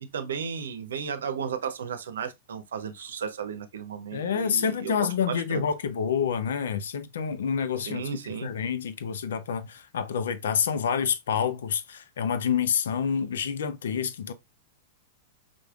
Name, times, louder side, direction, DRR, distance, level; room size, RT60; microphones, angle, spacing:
voice 1, 0.0-5.6 7.9-8.5, right 7 dB, 80° right, 0.7 m, -34 dB
voice 2, 4.1-8.0 8.3-14.3, left 7 dB, 75° left, 0.6 m, -28 dB
5.1 x 3.4 x 2.4 m
hypercardioid pair, 110°, 0 cm